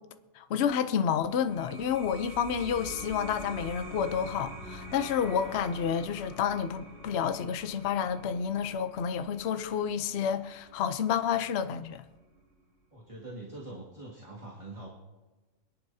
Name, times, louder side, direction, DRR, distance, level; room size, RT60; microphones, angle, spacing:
voice 1, 0.4-12.0, left 8 dB, 55° left, 0.8 m, -30 dB
sound 1, 1.3-12.5, right 1 dB, 50° right, 3.6 m, -46 dB
sound 2, 3.0-9.4, equal, 5° left, 2.5 m, -54 dB
voice 2, 12.9-14.9, right 2 dB, 20° right, 2.0 m, -44 dB
25.5 x 11.0 x 2.8 m
omnidirectional pair, 1.6 m